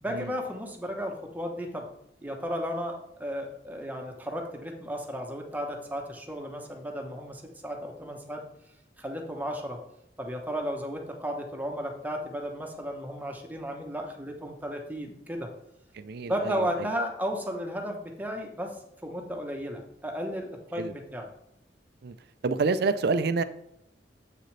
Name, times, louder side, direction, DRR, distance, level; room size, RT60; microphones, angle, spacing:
voice 1, 0.0-1.9 2.2-8.4 9.0-9.8 10.2-15.5 16.2-18.8 19.0-21.3, equal, 10° right, 2 dB, 1.0 m, -34 dB
voice 2, 15.9-16.9 20.8-20.9 22.0-22.1 22.4-23.4, right 4 dB, 65° right, 13 dB, 0.4 m, -28 dB
7.6 x 6.5 x 3.3 m, 0.75 s
head